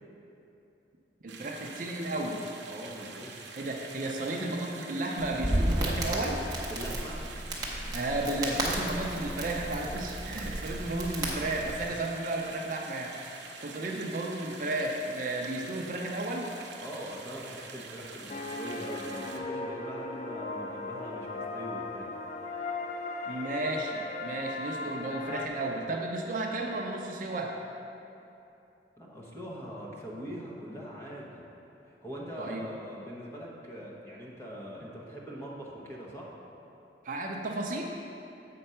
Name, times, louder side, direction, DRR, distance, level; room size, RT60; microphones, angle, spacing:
voice 1, 1.2-2.4 3.5-6.5 7.9-16.6 23.3-27.5 32.4-32.7 37.0-37.9, right 2 dB, 45° right, 0 dB, 0.5 m, -33 dB
sound 1, 1.3-19.4, right 4 dB, 80° right, 0.7 m, -46 dB
voice 2, 2.7-3.4 6.6-7.2 8.1-8.6 16.8-22.1 29.0-31.4 31.9-36.3, equal, 15° left, -4 dB, 1.0 m, -42 dB
Crackle, 5.2-11.8, right 1 dB, 20° right, 0.9 m, -33 dB
sound 2, 18.3-25.5, left 3 dB, 40° left, 0.3 m, -37 dB
7.5 x 4.3 x 5.5 m, 2.8 s
head